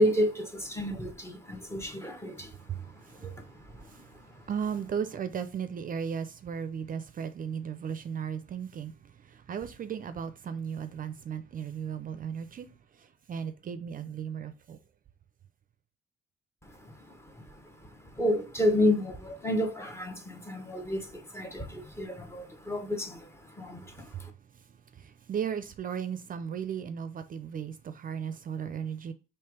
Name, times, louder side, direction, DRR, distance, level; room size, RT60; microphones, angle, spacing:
voice 1, 0.0-4.5 16.6-24.3, left 1 dB, 15° left, 1.0 m, -31 dB
voice 2, 4.5-8.9 9.5-12.7 13.3-14.8 25.3-29.1, right 7 dB, 45° right, 0.4 m, -35 dB
3.3 x 3.0 x 4.6 m
cardioid pair, 90°, 20 cm